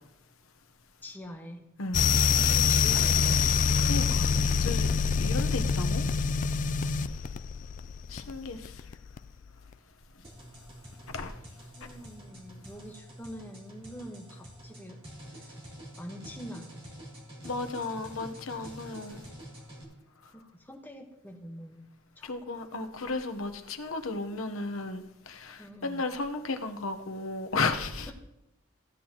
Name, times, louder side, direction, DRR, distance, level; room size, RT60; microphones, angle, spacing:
voice 1, 1.0-1.6 2.3-3.5 8.0-8.3 11.6-15.0 15.3-15.6 16.0-16.9 20.3-21.9 22.2-22.5 25.6-26.1 28.1-28.2, equal, 10° left, 1.2 m, -45 dB
sound 1, 1.9-9.4, left 6 dB, 40° left, 0.4 m, -26 dB
voice 2, 3.8-4.3 4.6-4.9 5.2-6.1 8.1-8.8 11.1-11.3 17.4-19.3 22.2-28.1, left 3 dB, 80° left, 1.0 m, -34 dB
sound 2, 10.2-19.8, equal, 30° right, 2.6 m, -47 dB
15.5 x 9.7 x 3.0 m
head